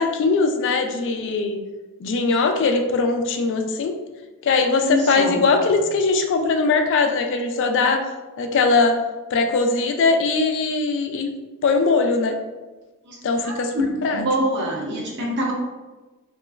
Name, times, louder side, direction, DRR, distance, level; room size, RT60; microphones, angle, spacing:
voice 1, 0.0-1.6 2.0-3.9 4.4-8.1 8.4-9.0 9.3-11.3 11.6-12.4 13.2-13.7 14.0-14.2, left 4 dB, 60° left, 5 dB, 0.3 m, -20 dB
voice 2, 4.7-5.5 13.0-13.2 13.4-15.5, equal, 55° right, -3 dB, 0.8 m, -25 dB
3.1 x 2.9 x 2.3 m, 1.2 s
head